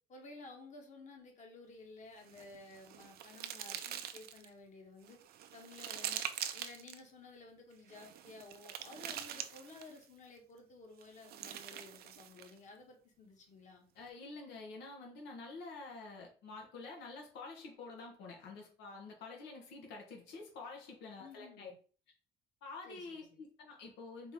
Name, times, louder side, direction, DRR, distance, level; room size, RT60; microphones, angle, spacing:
voice 1, 0.1-5.2 5.5-6.2 6.5-13.8 21.2-21.7 22.8-23.3, left 3 dB, 45° left, 2 dB, 1.3 m, -54 dB
sound 1, 2.2-4.5 5.0-7.0 7.9-10.0 11.0-12.6, right 10 dB, 65° right, 0.5 m, -44 dB
voice 2, 13.9-21.7 22.6-24.3, left 3 dB, 90° left, 1 dB, 1.1 m, -48 dB
4.3 x 2.8 x 3.4 m, 0.40 s
cardioid pair, 110°, 17 cm